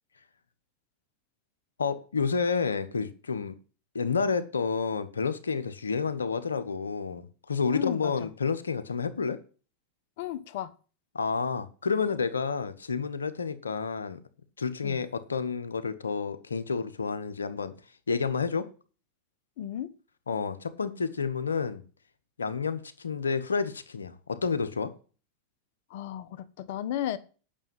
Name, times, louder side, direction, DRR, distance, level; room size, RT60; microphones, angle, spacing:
voice 1, 1.8-3.5 3.9-9.4 11.1-14.2 14.6-17.7 18.1-18.7 20.3-21.8 22.4-24.9, left 5 dB, 90° left, 1.1 m, -30 dB
voice 2, 7.7-8.3 10.2-10.7 14.8-15.0 19.6-19.9 25.9-27.2, left 11 dB, 65° left, 1.1 m, -34 dB
9.0 x 6.3 x 7.5 m
hypercardioid pair, 95°, 0 cm